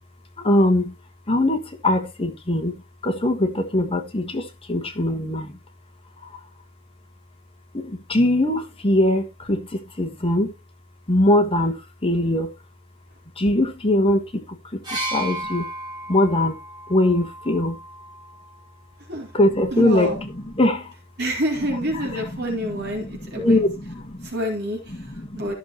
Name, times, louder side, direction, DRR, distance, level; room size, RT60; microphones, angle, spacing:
voice 1, 0.4-0.9 1.3-5.6 6.2-6.4 7.7-10.5 11.1-12.5 13.4-15.7 16.1-16.6 16.9-17.8 19.3-20.9 21.7-24.3 24.9-25.5, left 1 dB, 30° left, 1.4 m, -22 dB
sound 1, 14.8-18.7 19.7-19.8, right 1 dB, 20° right, 4.2 m, -34 dB
voice 2, 19.7-20.2 21.2-23.6 24.2-24.8 25.3-25.5, equal, 55° right, 3.9 m, -27 dB
13.5 x 6.6 x 3.0 m
head